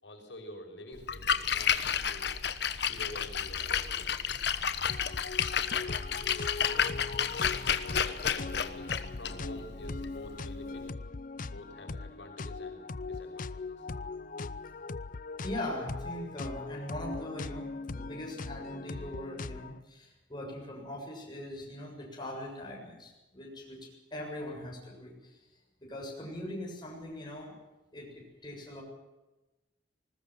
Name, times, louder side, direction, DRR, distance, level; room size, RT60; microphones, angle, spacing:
voice 1, 0.0-2.3 2.7-4.2 7.9-10.8 11.4-14.1, left 1 dB, 90° left, 2 dB, 5.7 m, -48 dB
Splash splatter, 1.0-10.9, left 7 dB, 65° left, 1.2 m, -31 dB
sound 1, 4.9-19.8, left 3 dB, 50° left, 0.6 m, -40 dB
voice 2, 15.4-25.4 25.8-27.5 27.9-28.8, left 1 dB, 25° left, -1 dB, 7.2 m, -41 dB
20.5 x 19.5 x 7.7 m, 1.1 s
head